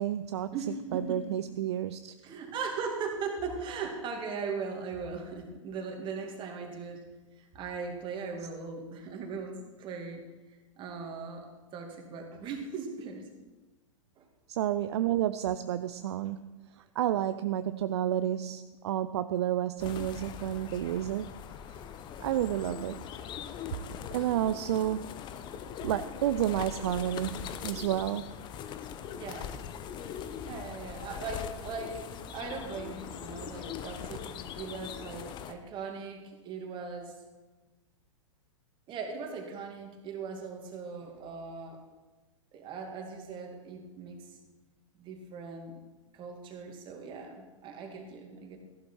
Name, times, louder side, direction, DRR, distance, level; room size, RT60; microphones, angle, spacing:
voice 1, 0.0-0.5 0.9-2.1 14.5-21.3 22.2-23.0 24.1-25.1 25.8-28.3, right 11 dB, 55° right, 12 dB, 0.5 m, -30 dB
voice 2, 0.5-1.4 2.2-7.0 7.4-10.2 10.8-13.3 14.2-14.3 24.2-24.5 29.1-29.6 30.4-32.1 32.3-37.1 38.9-41.8 42.5-44.4 45.0-45.8 46.1-48.6, right 5 dB, 30° right, 2 dB, 2.4 m, -39 dB
sound 1, 19.8-35.5, left 8 dB, 30° left, 0.8 m, -41 dB
14.5 x 11.5 x 4.6 m, 1.2 s
figure-of-eight pair, 105°, 17 cm